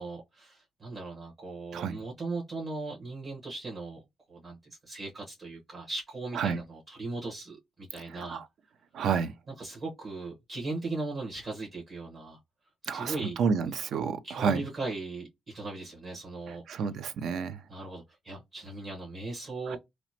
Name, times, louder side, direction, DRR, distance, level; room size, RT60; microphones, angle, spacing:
voice 1, 0.0-4.0 4.3-8.4 9.5-12.4 12.9-13.4 14.2-16.6 17.7-19.8, right 3 dB, 45° right, 1.1 m, -38 dB
voice 2, 8.9-9.3 12.9-14.6 16.7-17.6 19.7-19.8, right 6 dB, 70° right, 0.4 m, -30 dB
2.9 x 2.1 x 2.8 m
cardioid pair, 90°, 0 cm